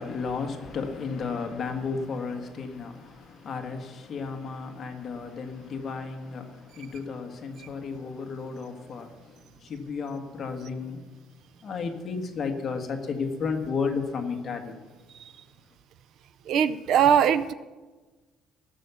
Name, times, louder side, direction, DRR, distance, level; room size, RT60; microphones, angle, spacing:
voice 1, 0.0-11.1 11.6-14.8, left 5 dB, 30° left, 4 dB, 1.5 m, -33 dB
voice 2, 16.5-17.5, right 8 dB, 55° right, 15 dB, 0.5 m, -21 dB
17.0 x 7.0 x 6.9 m, 1.3 s
cardioid pair, 160°, 0 cm